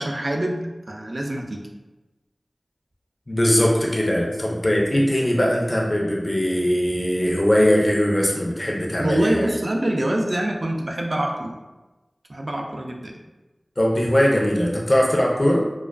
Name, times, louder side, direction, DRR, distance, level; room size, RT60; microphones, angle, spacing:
voice 1, 0.0-1.6 9.0-11.6 12.3-13.1, right 1 dB, 55° right, 1 dB, 0.3 m, -25 dB
voice 2, 3.3-9.6 13.8-15.6, equal, 45° left, -3 dB, 0.5 m, -20 dB
2.4 x 2.2 x 2.2 m, 1.1 s
wide cardioid pair, 45°, 0 cm